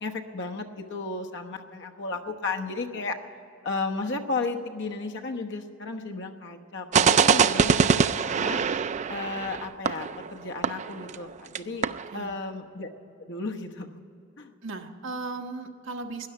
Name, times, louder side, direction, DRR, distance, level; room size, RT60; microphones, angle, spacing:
voice 1, 0.0-3.2 3.6-7.9 8.2-8.6 9.1-11.9 12.1-12.9 13.2-14.0 14.4-14.5, left 3 dB, 60° left, 3 dB, 1.1 m, -34 dB
sound 1, 6.9-11.3 11.6-11.7 11.8-12.1, right 6 dB, 35° right, 0.3 m, -23 dB
voice 2, 14.6-16.3, right 3 dB, 65° right, 2 dB, 1.2 m, -36 dB
12.5 x 10.5 x 10.0 m, 2.6 s
head